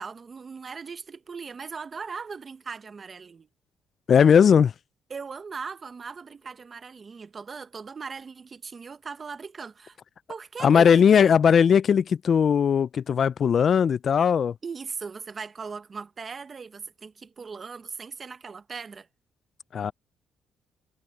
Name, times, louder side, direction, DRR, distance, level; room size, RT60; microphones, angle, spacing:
voice 1, 0.0-3.5 5.1-10.0 10.3-11.4 14.6-19.1, right 5 dB, 40° right, 1.2 m, -39 dB
voice 2, 4.1-4.7 10.6-14.5 19.7-19.9, left 7 dB, 55° left, 0.4 m, -19 dB
cardioid pair, 90°, 0 cm